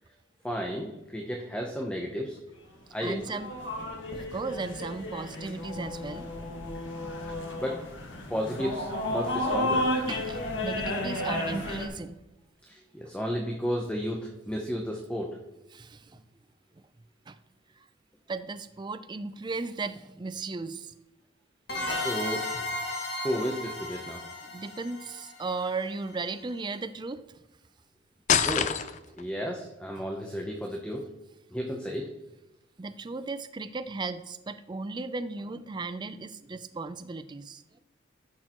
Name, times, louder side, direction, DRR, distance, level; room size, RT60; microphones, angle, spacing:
voice 1, 0.4-2.4 2.9-3.2 7.6-7.8 8.3-9.9 12.7-15.4 21.9-22.7 23.2-24.2 28.4-28.9 29.2-31.1 31.5-32.1, equal, 5° left, 1 dB, 0.8 m, -33 dB
voice 2, 3.0-3.5 4.3-6.3 10.1-12.2 15.7-16.2 16.8-16.9 17.3-17.4 17.8-17.9 18.3-20.9 24.4-27.4 32.8-37.8, right 3 dB, 25° right, 11 dB, 0.4 m, -36 dB
sound 1, 3.1-11.9, left 1 dB, 80° left, 1.7 m, -32 dB
sound 2, 21.7-26.2, left 2 dB, 60° left, 2.1 m, -35 dB
sound 3, 28.3-29.2, left 8 dB, 40° left, 0.4 m, -25 dB
14.5 x 6.5 x 3.0 m, 0.98 s
head